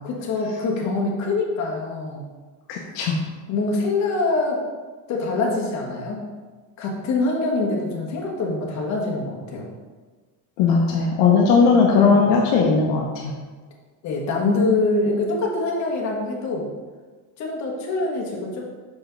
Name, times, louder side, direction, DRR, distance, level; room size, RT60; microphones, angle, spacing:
voice 1, 0.0-2.2 3.5-4.6 5.1-6.2 6.8-9.7 11.9-12.3 14.0-16.7 17.4-18.6, left 3 dB, 40° left, -1 dB, 1.3 m, -24 dB
voice 2, 2.7-3.2 10.6-13.3, left 5 dB, 65° left, -1 dB, 1.0 m, -18 dB
6.0 x 5.1 x 3.9 m, 1.4 s
cardioid pair, 175°, 44 cm